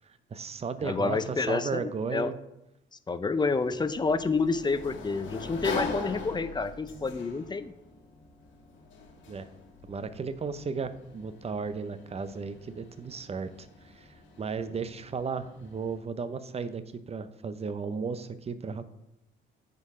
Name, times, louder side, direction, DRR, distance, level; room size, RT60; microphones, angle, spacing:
voice 1, 0.3-2.4 9.3-9.5 9.8-13.7 13.9-14.1 14.4-18.9, right 5 dB, 30° right, 12 dB, 0.6 m, -35 dB
voice 2, 0.8-2.3 3.1-7.7, left 4 dB, 20° left, 12 dB, 0.5 m, -29 dB
Sliding door, 3.3-16.0, left 4 dB, 75° left, 1.5 m, -42 dB
9.5 x 4.6 x 3.7 m, 0.88 s
cardioid pair, 90°, 20 cm